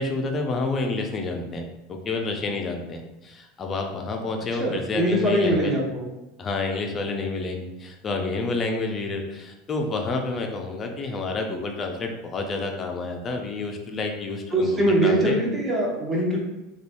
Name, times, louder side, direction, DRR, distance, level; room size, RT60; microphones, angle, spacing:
voice 1, 0.0-5.8 6.4-15.4, left 3 dB, 30° left, 3 dB, 0.5 m, -29 dB
voice 2, 4.6-6.0 14.5-16.4, right 1 dB, 20° right, -3 dB, 0.8 m, -22 dB
3.0 x 2.3 x 2.5 m, 0.97 s
supercardioid pair, 110°, 0 cm